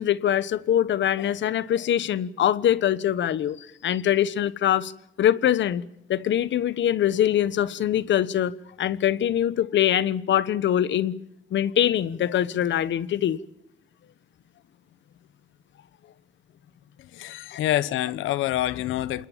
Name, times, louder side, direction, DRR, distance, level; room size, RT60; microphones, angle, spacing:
voice 1, 0.0-4.9 5.2-5.8 6.1-8.5 8.8-11.1 11.5-13.4 17.5-17.6, left 11 dB, 65° left, 1.3 m, -23 dB
voice 2, 17.0-19.3, left 13 dB, 90° left, 1.1 m, -27 dB
27.5 x 21.0 x 7.4 m
cardioid pair, 90°, 20 cm